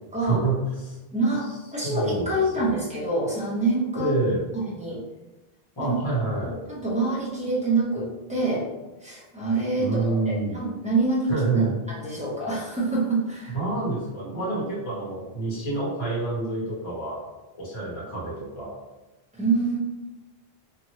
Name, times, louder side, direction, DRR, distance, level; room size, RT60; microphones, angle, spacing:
voice 1, 0.2-0.6 0.8-1.0 1.8-2.8 3.9-4.5 5.8-6.6 9.8-10.6 11.3-11.8 13.5-17.3 17.5-18.8, right 3 dB, 30° left, -6 dB, 0.9 m, -28 dB
voice 2, 1.1-4.1 4.5-5.0 5.8-5.9 6.5-8.7 9.0-13.6 19.3-19.8, right 2 dB, 10° right, -6 dB, 0.6 m, -26 dB
3.0 x 2.5 x 2.8 m, 1.1 s
omnidirectional pair, 1.0 m